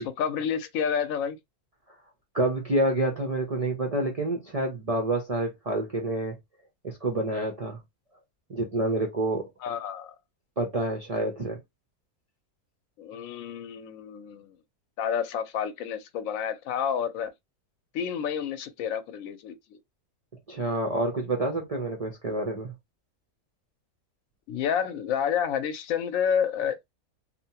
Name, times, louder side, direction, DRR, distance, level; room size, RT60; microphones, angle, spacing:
voice 1, 0.0-1.4 9.6-10.1 13.0-14.5 15.0-17.3 17.9-19.8 24.5-26.9, left 8 dB, 70° left, 1.0 m, -29 dB
voice 2, 2.3-6.3 6.8-7.8 8.5-9.5 10.6-11.6 20.5-22.7, right 2 dB, 60° right, 0.3 m, -28 dB
2.8 x 2.1 x 2.7 m
omnidirectional pair, 1.5 m